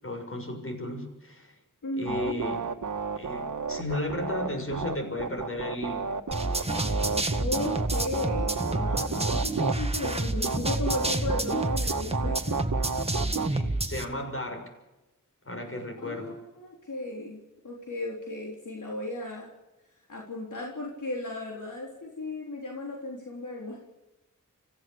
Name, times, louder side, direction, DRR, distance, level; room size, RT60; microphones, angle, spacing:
voice 1, 0.0-1.6 2.0-2.6 3.1-6.1 13.0-13.2 13.5-14.7 15.4-16.4, left 1 dB, 45° left, 4 dB, 6.7 m, -34 dB
voice 2, 1.8-2.4 7.4-12.6 16.0-19.5 20.1-23.8, left 2 dB, 70° left, -1 dB, 3.8 m, -35 dB
sound 1, 2.1-9.7 10.0-10.1 10.4-13.5, right 5 dB, 75° right, 1.6 m, -31 dB
sound 2, 6.3-14.0, right 2 dB, 20° right, 1.9 m, -29 dB
26.0 x 15.5 x 7.2 m, 1.0 s
wide cardioid pair, 55°, 31 cm